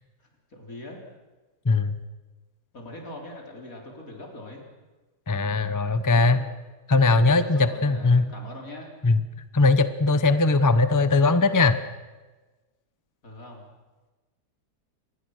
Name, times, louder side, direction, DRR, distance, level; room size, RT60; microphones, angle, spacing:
voice 1, 0.2-1.0 2.7-4.6 6.2-6.4 7.3-8.9 13.2-13.7, left 1 dB, 55° left, 1 dB, 4.3 m, -41 dB
voice 2, 5.3-6.4 6.9-8.3 9.0-9.2 9.5-11.8, left 3 dB, 20° left, 12 dB, 0.5 m, -20 dB
26.0 x 20.5 x 6.5 m, 1.2 s
omnidirectional pair, 1.8 m